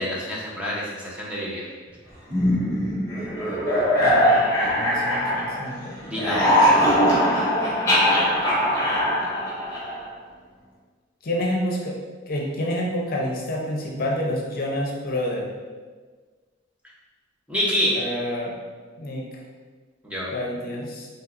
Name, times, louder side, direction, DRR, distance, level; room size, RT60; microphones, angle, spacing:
voice 1, 0.0-1.7 6.0-6.9 17.5-18.0 20.0-20.3, equal, 5° right, -6 dB, 0.7 m, -27 dB
sound 1, 2.3-5.8 6.1-10.1, equal, 15° left, 1.3 m, -21 dB
voice 2, 4.0-6.3 11.2-12.0 12.3-15.5 17.9-18.6 19.0-19.2 20.3-21.1, left 1 dB, 50° left, -1 dB, 0.6 m, -28 dB
5.6 x 3.0 x 2.5 m, 1.4 s
head